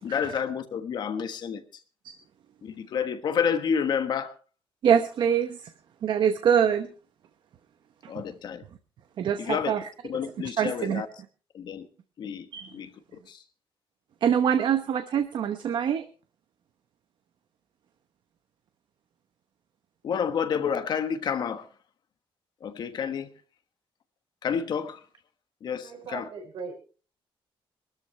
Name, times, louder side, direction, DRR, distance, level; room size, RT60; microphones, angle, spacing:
voice 1, 0.0-1.6 2.6-4.3 8.1-8.6 9.4-9.8 10.1-11.1 11.5-11.9 12.2-12.5 12.7-12.9 13.3-13.4 20.0-21.7 22.6-23.3 24.4-25.0 25.6-26.3, left 7 dB, 50° left, 1.3 m, -29 dB
voice 2, 4.8-5.7 6.0-6.9 9.2-9.8 10.6-11.0 12.5-12.7 14.2-16.0, right 8 dB, 55° right, 0.9 m, -24 dB
voice 3, 25.8-26.7, right 5 dB, 75° right, 5.8 m, -39 dB
22.5 x 13.0 x 3.3 m
cardioid pair, 175°, 9 cm